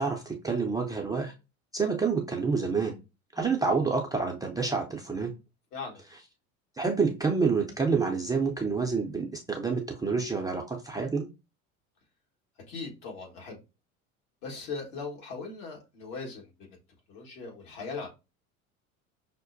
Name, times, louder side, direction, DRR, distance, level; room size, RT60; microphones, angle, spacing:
voice 1, 0.0-1.3 1.7-2.9 3.3-5.3 6.8-11.3, right 4 dB, 10° right, 0.4 m, -28 dB
voice 2, 5.7-6.0 12.7-13.6 14.4-16.8 17.1-18.1, left 4 dB, 65° left, 1.5 m, -39 dB
5.7 x 2.1 x 2.5 m
hypercardioid pair, 80°, 42 cm